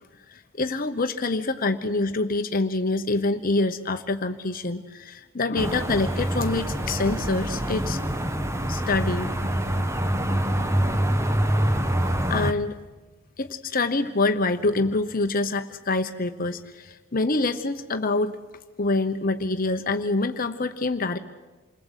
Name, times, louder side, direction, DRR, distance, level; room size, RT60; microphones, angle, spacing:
voice 1, 0.3-8.0 8.7-9.3 12.0-12.7 13.4-18.4 18.8-21.2, left 3 dB, 45° left, 8 dB, 1.0 m, -26 dB
sound 1, 5.6-12.5, right 1 dB, 15° right, 1.1 m, -25 dB
28.0 x 21.0 x 8.3 m, 1.2 s
head